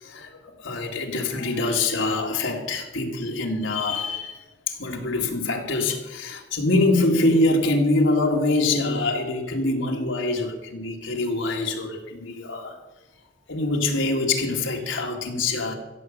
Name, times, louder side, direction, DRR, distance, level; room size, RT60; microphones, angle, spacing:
voice 1, 0.0-4.4 4.7-12.8 13.5-15.7, left 2 dB, 85° left, 2.1 m, -24 dB
15.0 x 7.5 x 6.7 m
head